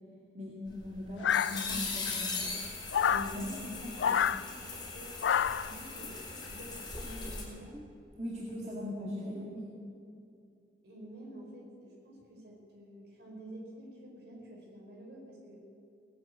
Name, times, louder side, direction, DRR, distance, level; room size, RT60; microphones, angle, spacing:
voice 1, 0.3-2.5 3.1-3.5 3.8-4.2 8.2-9.7, left 1 dB, 40° right, -5 dB, 2.3 m, -40 dB
sound 1, 0.7-7.4, left 4 dB, 25° left, 3.7 m, -39 dB
sound 2, 1.2-2.0 2.9-3.3 4.0-4.4 5.2-5.7, left 8 dB, 85° left, 0.4 m, -28 dB
voice 2, 3.3-4.2 4.4-5.2 5.6-7.8 9.2-9.3 10.8-15.6, right 1 dB, 65° right, -2 dB, 4.8 m, -49 dB
19.0 x 8.9 x 8.2 m, 2.5 s
head